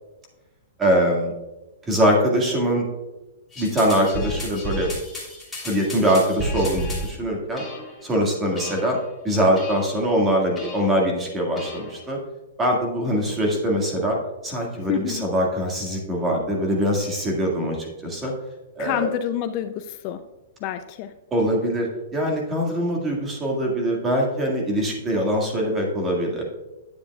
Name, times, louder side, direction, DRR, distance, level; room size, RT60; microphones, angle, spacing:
voice 1, 0.8-1.3 1.9-2.9 3.6-4.9 5.6-7.6 8.0-9.0 9.2-12.2 12.6-14.2 14.4-18.3 18.8-19.1 21.3-26.4, equal, 15° right, -1 dB, 1.9 m, -23 dB
sound 1, 3.5-7.1 7.6-8.1 8.6-9.0 9.6-10.1 10.6-11.0 11.6-12.1, equal, 5° left, 3.2 m, -33 dB
voice 2, 14.9-15.3 18.8-20.3 20.6-21.1, left 11 dB, 40° left, 8 dB, 0.4 m, -28 dB
10.0 x 8.5 x 2.4 m, 1.0 s
hypercardioid pair, 150°, 0 cm